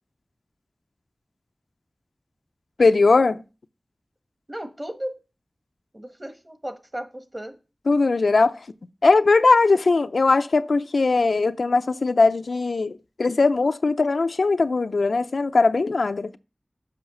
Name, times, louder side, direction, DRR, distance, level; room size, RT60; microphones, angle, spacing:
voice 1, 2.8-3.4 7.9-8.6 9.0-16.3, left 3 dB, 90° left, 0.5 m, -20 dB
voice 2, 4.5-5.2 5.9-7.6, right 1 dB, 20° right, 1.5 m, -35 dB
7.8 x 5.6 x 5.6 m
wide cardioid pair, 70°, 0 cm